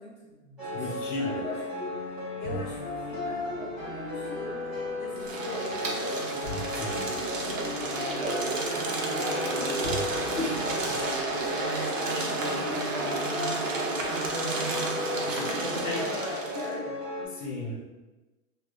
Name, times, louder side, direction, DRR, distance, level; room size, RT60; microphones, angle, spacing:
voice 1, 0.0-6.4 7.3-10.1 10.9-14.8 15.4-17.0 17.7-17.8, left 1 dB, 35° left, -6 dB, 0.6 m, -40 dB
sound 1, 0.6-17.2, left 2 dB, 5° right, 0.8 m, -35 dB
voice 2, 0.7-1.4 6.7-7.1 10.3-11.0 15.3-16.0 17.3-17.8, left 2 dB, 65° left, -2 dB, 1.0 m, -34 dB
sound 2, 2.4-9.6 9.8-11.8, right 1 dB, 20° right, 0.4 m, -44 dB
sound 3, 5.2-16.7, right 3 dB, 65° right, 0.7 m, -31 dB
3.4 x 2.3 x 2.5 m, 1.1 s
hypercardioid pair, 175°, 41 cm